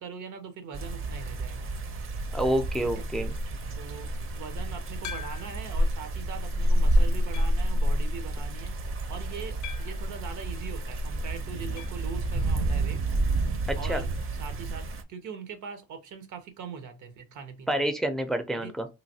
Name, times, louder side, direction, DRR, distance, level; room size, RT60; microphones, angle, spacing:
voice 1, 0.0-1.7 2.9-3.1 3.7-13.0 13.7-14.1 14.4-17.9 18.5-18.7, right 6 dB, 75° right, 0.8 m, -41 dB
sound 1, 0.7-15.0, right 1 dB, 45° right, 0.6 m, -29 dB
voice 2, 2.3-3.3 13.7-14.0 17.7-18.9, right 1 dB, ahead, 0.4 m, -28 dB
sound 2, 5.0-5.7 6.3-6.4 7.3-7.7 9.6-10.1 11.8-12.1 12.3-12.4 12.7-12.8 14.8-14.9, left 10 dB, 75° left, 0.5 m, -42 dB
3.2 x 2.6 x 2.7 m
cardioid pair, 90°, 30 cm